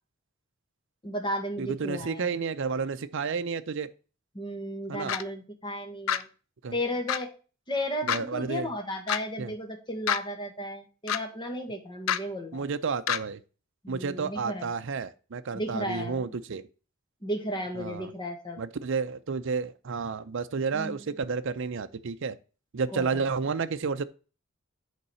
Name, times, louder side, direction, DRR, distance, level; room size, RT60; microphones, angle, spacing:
voice 1, 1.0-2.3 4.3-6.3 6.7-7.3 7.7-12.6 13.8-14.7 15.5-16.3 17.2-18.6 20.7-21.1 22.9-23.2, equal, 25° left, 1.4 m, -34 dB
voice 2, 1.6-3.9 4.9-5.2 6.6-6.7 8.0-8.7 9.4-9.5 12.5-13.4 13.9-16.7 17.7-18.1 18.6-22.4 22.7-24.0, right 5 dB, 65° right, 0.5 m, -31 dB
sound 1, 5.1-5.2 6.1-6.2 7.1-7.2 8.1-8.2 9.1-9.2 10.1-10.2 11.1-11.2 12.1-12.2 13.1-13.2, left 9 dB, 75° left, 0.5 m, -26 dB
8.2 x 4.0 x 5.6 m
head